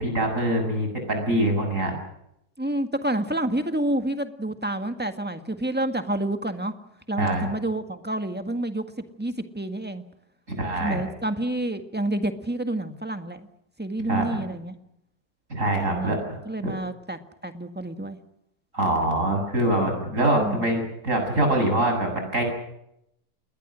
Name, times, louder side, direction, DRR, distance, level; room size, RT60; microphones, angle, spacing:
voice 1, 0.0-1.9 7.2-7.5 10.5-11.0 14.1-14.3 15.5-16.4 16.6-16.7 18.7-22.4, right 1 dB, 45° right, 4 dB, 8.0 m, -24 dB
voice 2, 2.6-6.7 7.1-8.8 9.2-10.0 10.8-13.5 13.8-14.7 15.9-16.2 16.4-18.2 20.4-20.7, right 1 dB, 5° right, 7 dB, 1.6 m, -28 dB
28.5 x 21.5 x 6.3 m, 0.80 s
omnidirectional pair, 1.8 m